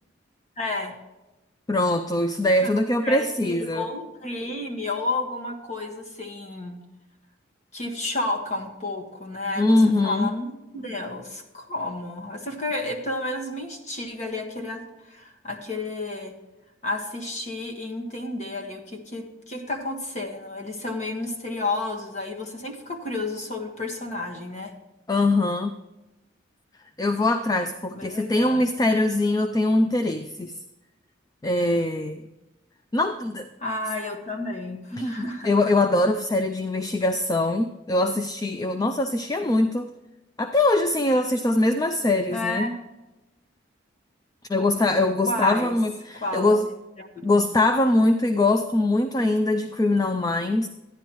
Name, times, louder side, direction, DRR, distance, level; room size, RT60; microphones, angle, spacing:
voice 1, 0.6-0.9 2.6-2.7 3.0-6.8 7.7-16.3 16.8-24.7 27.9-28.6 33.6-35.5 42.3-42.8 45.3-45.8 46.1-46.5 47.0-47.4, left 2 dB, 35° left, 2 dB, 1.4 m, -31 dB
voice 2, 1.7-3.9 9.6-10.3 25.1-25.8 27.0-30.5 31.4-32.2 32.9-33.5 35.0-39.9 40.4-42.7 44.5-46.7 47.2-50.7, left 2 dB, 20° left, 8 dB, 0.4 m, -22 dB
12.0 x 10.5 x 3.0 m, 1.0 s
head